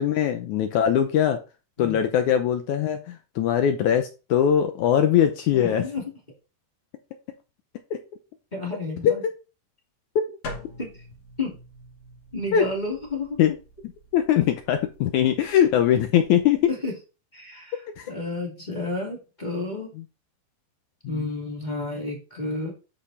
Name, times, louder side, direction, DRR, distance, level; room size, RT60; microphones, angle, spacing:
voice 1, 0.0-1.4 1.8-5.8 7.9-8.0 9.0-9.1 12.5-12.7 13.4-13.5 14.1-16.7 18.0-18.1 21.0-21.3, left 9 dB, 75° left, 7 dB, 1.8 m, -21 dB
voice 2, 5.5-6.0 8.5-9.2 10.8-10.9 11.4-11.5 12.3-13.4 16.7-16.9 17.3-19.9 21.1-22.7, left 2 dB, 15° left, -3 dB, 2.3 m, -31 dB
sound 1, 10.4-16.6, left 2 dB, 55° left, 3.7 m, -45 dB
10.5 x 5.3 x 4.2 m, 0.31 s
omnidirectional pair, 4.2 m